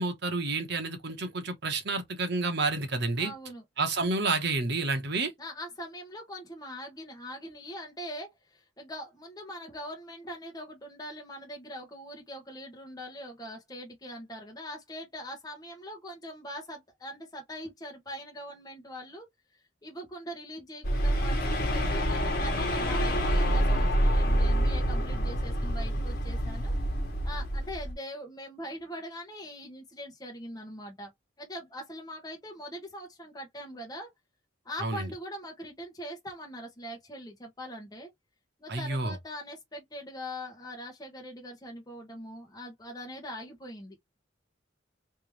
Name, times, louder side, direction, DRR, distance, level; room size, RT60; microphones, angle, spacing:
voice 1, 0.0-3.3 3.8-5.3 34.8-35.1 38.7-39.2, right 3 dB, 60° right, 1.2 m, -29 dB
voice 2, 3.2-3.6 5.4-19.3 19.8-26.7 27.2-31.1 31.4-34.1 34.6-38.1 38.6-44.0, equal, 20° left, 1.2 m, -42 dB
sound 1, 20.8-27.9, equal, 55° left, 1.5 m, -27 dB
3.5 x 2.9 x 3.3 m
head